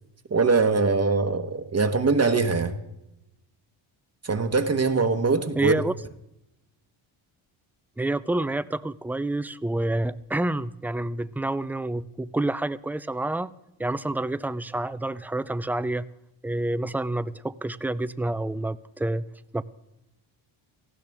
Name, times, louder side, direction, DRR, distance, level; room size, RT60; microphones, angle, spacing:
voice 1, 0.3-2.7 4.2-5.7, right 4 dB, 30° right, 1.1 m, -22 dB
voice 2, 5.6-5.9 8.0-13.5 13.8-16.1 16.4-19.3 19.5-19.6, right 2 dB, 5° right, 0.4 m, -28 dB
18.5 x 15.0 x 3.5 m
cardioid pair, 85°, 49 cm